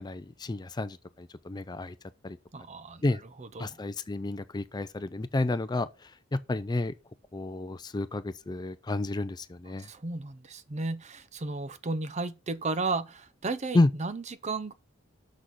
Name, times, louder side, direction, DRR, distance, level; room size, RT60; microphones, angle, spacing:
voice 1, 0.0-1.9 2.2-2.4 3.0-3.2 3.6-5.9 6.3-6.9 7.3-9.9 13.7-13.9, left 2 dB, 20° left, 0.4 m, -30 dB
voice 2, 2.5-3.0 3.4-3.8 9.8-14.7, right 3 dB, 35° right, 0.6 m, -34 dB
6.3 x 6.2 x 5.5 m
head